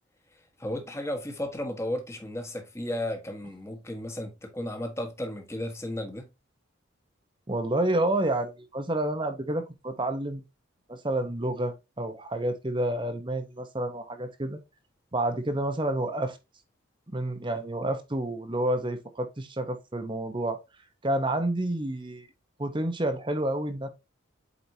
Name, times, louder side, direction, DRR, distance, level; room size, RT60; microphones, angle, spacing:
voice 1, 0.6-6.3, left 1 dB, 15° left, 1.5 m, -34 dB
voice 2, 7.5-10.4 10.9-14.6 15.1-16.4 17.1-20.6 21.0-22.3 22.6-23.9, right 1 dB, 25° right, 1.0 m, -29 dB
8.2 x 4.9 x 2.8 m
head